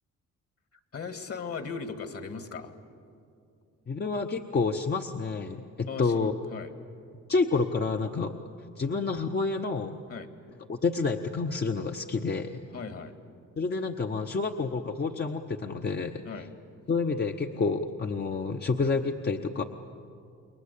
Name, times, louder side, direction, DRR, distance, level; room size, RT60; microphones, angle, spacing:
voice 1, 0.9-2.7 5.9-6.7 10.1-10.3 12.7-13.1 16.2-16.5, left 5 dB, 50° left, 8 dB, 2.2 m, -38 dB
voice 2, 3.9-6.3 7.3-8.3 8.8-10.0 10.7-12.6 13.6-16.2 16.9-19.6, left 4 dB, 35° left, 4 dB, 1.0 m, -29 dB
29.0 x 22.0 x 8.4 m, 2.4 s
cardioid pair, 90°, 30 cm